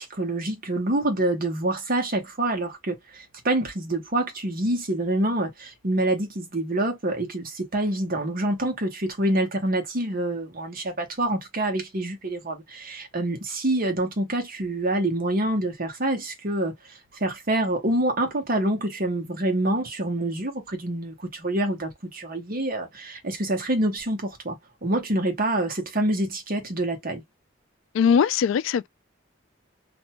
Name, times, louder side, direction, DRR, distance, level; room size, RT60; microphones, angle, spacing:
voice 1, 0.0-27.2, right 1 dB, 50° right, 1.0 m, -26 dB
voice 2, 27.9-28.9, left 7 dB, 85° left, 0.3 m, -20 dB
2.6 x 2.2 x 2.8 m
head